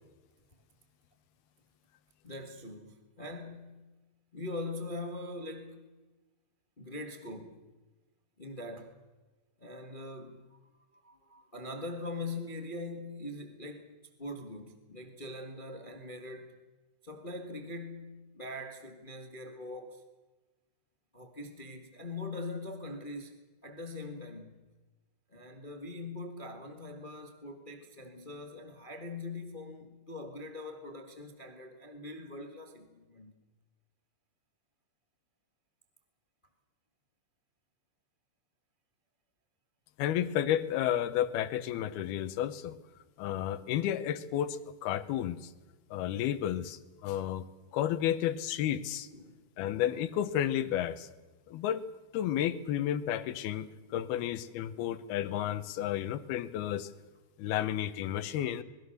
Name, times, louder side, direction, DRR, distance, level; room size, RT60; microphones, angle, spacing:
voice 1, 2.2-3.8 4.3-5.9 6.8-7.6 8.4-9.0 9.6-10.6 10.9-16.6 17.0-20.1 21.1-23.3 23.6-24.6 25.3-33.3 49.1-49.4, left 2 dB, 40° left, 0.7 m, -42 dB
voice 2, 40.0-42.8 43.2-45.5 45.9-47.4 47.7-49.1 49.6-51.1 51.5-51.8 52.1-56.9 57.4-58.6, left 11 dB, 80° left, 2.9 m, -32 dB
26.0 x 21.0 x 6.6 m
omnidirectional pair, 4.4 m